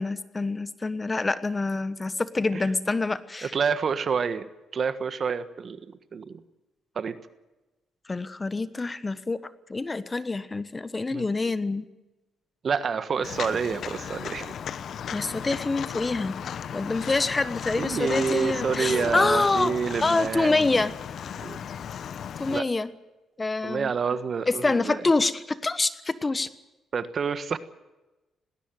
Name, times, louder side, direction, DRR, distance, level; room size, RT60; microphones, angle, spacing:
voice 1, 0.0-3.5 8.1-11.9 15.1-16.3 16.7-19.7 20.0-20.9 22.4-22.9 23.4-23.9 24.5-26.5, left 3 dB, 25° left, 14 dB, 1.2 m, -26 dB
voice 2, 3.4-4.5 4.7-6.4 6.9-7.2 11.1-11.3 12.6-14.5 17.8-20.8 21.4-21.6 22.5-22.6 23.6-25.0 26.9-27.6, right 6 dB, 45° right, 13 dB, 1.4 m, -28 dB
Walk footsteps, 13.2-22.6, left 8 dB, 60° left, 1.0 m, -35 dB
19.5 x 17.5 x 9.3 m, 1.0 s
cardioid pair, 90°, 0 cm